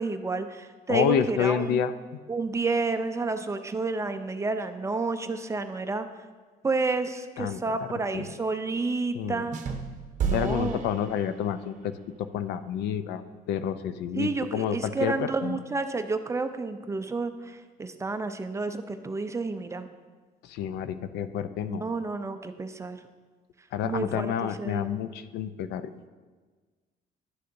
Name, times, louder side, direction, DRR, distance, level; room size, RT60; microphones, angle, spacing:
voice 1, 0.0-1.8 2.3-6.1 6.6-9.6 10.2-10.8 14.2-19.9 21.7-23.0 23.8-24.9, right 3 dB, 15° right, 9 dB, 0.4 m, -30 dB
voice 2, 0.9-2.2 7.4-7.6 8.1-8.3 9.1-9.4 10.3-11.9 12.2-13.2 13.5-15.6 20.4-21.8 23.7-25.9, left 8 dB, 80° left, 12 dB, 0.5 m, -29 dB
sound 1, 9.5-11.7, right 6 dB, 50° right, 0.7 m, -33 dB
11.0 x 6.5 x 2.6 m, 1.4 s
cardioid pair, 110°, 17 cm